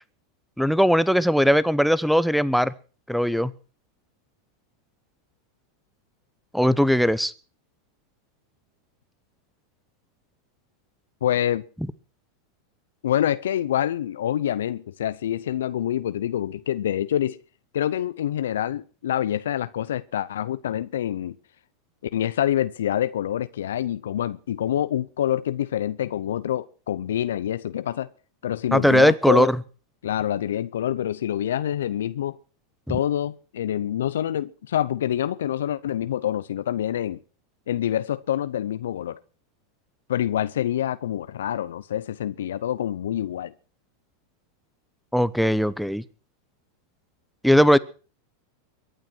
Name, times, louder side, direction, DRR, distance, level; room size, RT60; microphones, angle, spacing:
voice 1, 0.6-2.7 3.1-3.5 6.5-7.3 28.7-29.6 45.1-46.0 47.4-47.8, equal, ahead, 0.9 m, -19 dB
voice 2, 11.2-11.6 13.0-17.4 17.7-21.4 22.1-28.1 28.4-29.5 30.0-32.4 32.9-37.2 37.7-39.2 40.1-43.5, left 11 dB, 80° left, 0.7 m, -26 dB
23.0 x 9.2 x 6.1 m
hypercardioid pair, 100°, 0 cm